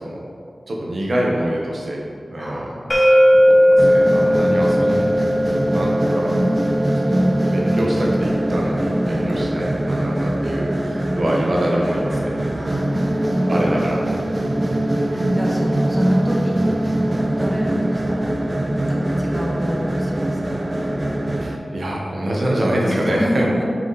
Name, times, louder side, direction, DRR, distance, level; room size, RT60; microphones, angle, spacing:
voice 1, 0.7-2.0 2.3-2.7 3.3-5.1 5.5-6.3 7.0-12.3 13.5-14.0 14.4-14.9 21.4-23.5, right 1 dB, 70° right, -3 dB, 1.0 m, -25 dB
voice 2, 2.3-3.1 4.2-4.5 9.0-9.4 12.5-13.6 14.5-20.9 22.8-23.6, equal, 5° right, -3 dB, 1.2 m, -29 dB
sound 1, 2.9-8.7, equal, 20° left, 1.1 m, -18 dB
sound 2, 3.8-21.6, right 1 dB, 35° right, 0.4 m, -22 dB
6.3 x 4.9 x 4.0 m, 2.3 s
wide cardioid pair, 75°, 0 cm